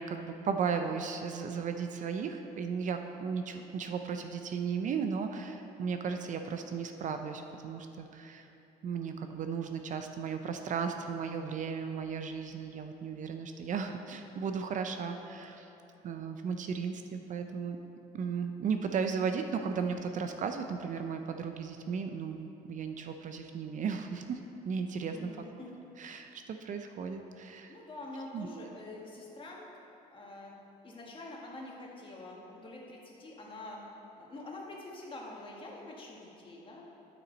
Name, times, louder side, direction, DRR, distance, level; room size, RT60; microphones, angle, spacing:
voice 1, 0.0-8.5 8.8-15.7 16.0-17.8 18.1-24.4 24.6-25.3 26.0-27.8 28.3-28.7, right 6 dB, 50° right, 6 dB, 0.5 m, -35 dB
voice 2, 25.0-25.8 27.7-29.6 30.1-30.5 30.8-33.8 34.2-36.8, left 2 dB, 30° left, -3 dB, 1.8 m, -46 dB
12.5 x 6.0 x 4.0 m, 3.0 s
cardioid pair, 110°, 17 cm